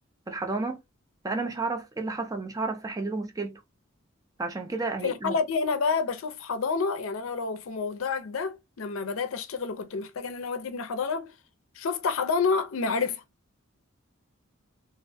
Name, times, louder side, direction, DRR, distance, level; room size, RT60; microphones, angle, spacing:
voice 1, 0.3-0.8 1.2-3.6 4.4-5.4, right 3 dB, 15° right, 0.3 m, -31 dB
voice 2, 5.0-11.3 11.8-13.2, left 5 dB, 75° left, 0.5 m, -29 dB
2.4 x 2.1 x 2.6 m
head